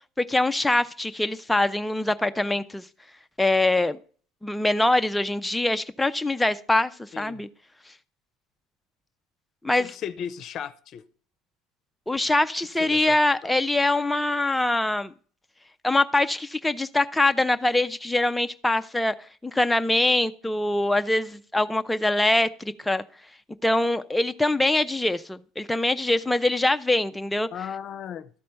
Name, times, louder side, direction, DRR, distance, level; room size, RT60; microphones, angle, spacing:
voice 1, 0.2-2.8 3.4-4.0 4.4-7.5 9.6-9.9 12.1-15.1 15.8-19.1 19.4-23.0 23.6-27.5, left 2 dB, 10° left, 9 dB, 0.6 m, -23 dB
voice 2, 9.8-11.0 12.8-13.2 13.4-13.5 27.5-28.3, left 8 dB, 50° left, 12 dB, 0.7 m, -35 dB
12.5 x 4.3 x 5.3 m, 0.43 s
hypercardioid pair, 75°, 0 cm